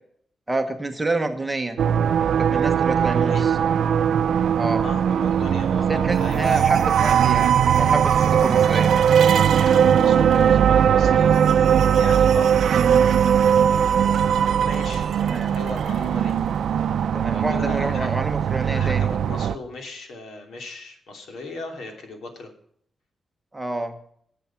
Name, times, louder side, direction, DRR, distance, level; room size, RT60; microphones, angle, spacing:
voice 1, 0.5-1.8 2.4-3.6 4.5-4.8 5.9-8.9 15.2-15.6 17.1-19.1 23.5-24.0, right 2 dB, 10° right, 6 dB, 1.1 m, -28 dB
sound 1, 1.8-19.6, right 8 dB, 75° right, 0.5 m, -19 dB
voice 2, 2.8-3.5 4.8-6.6 8.4-8.5 9.6-12.6 14.6-15.1 15.5-16.3 17.3-18.1 18.6-22.5, left 2 dB, 75° left, 3 dB, 2.9 m, -37 dB
19.0 x 7.5 x 5.9 m, 0.65 s
wide cardioid pair, 180°, 0 cm